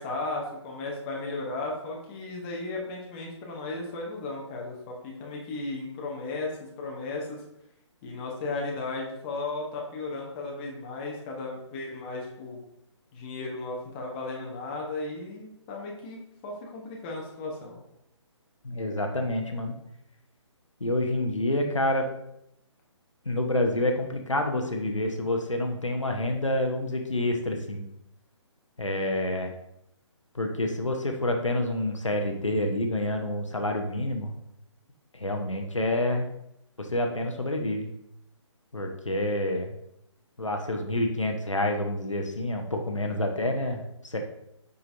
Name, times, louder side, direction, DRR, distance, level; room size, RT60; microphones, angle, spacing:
voice 1, 0.0-7.4 8.0-12.6 13.1-17.8, left 2 dB, 20° left, -1 dB, 1.0 m, -35 dB
voice 2, 18.6-19.7 20.8-22.1 23.2-27.8 28.8-29.5 30.3-34.3 35.1-36.3 36.8-37.9 38.7-39.7 40.4-44.2, left 1 dB, 80° left, 3 dB, 1.0 m, -28 dB
6.8 x 5.4 x 2.6 m, 0.80 s
figure-of-eight pair, 140°, 16 cm